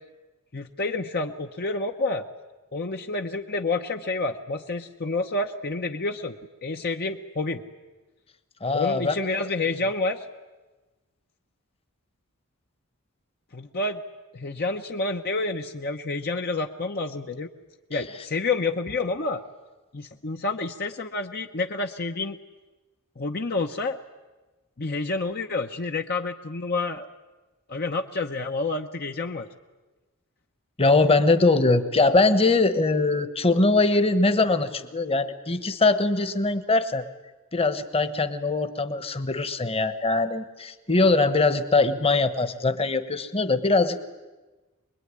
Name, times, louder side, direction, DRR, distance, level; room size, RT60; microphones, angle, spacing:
voice 1, 0.5-2.3 2.7-7.6 8.7-10.3 13.5-14.0 14.3-17.5 17.9-19.4 19.9-22.4 23.2-24.0 24.8-27.1 27.7-29.5, left 3 dB, 45° left, 4 dB, 1.0 m, -29 dB
voice 2, 8.6-9.1 30.8-37.0 37.5-44.0, left 3 dB, 25° left, 10 dB, 1.3 m, -22 dB
25.5 x 21.5 x 9.8 m, 1.2 s
head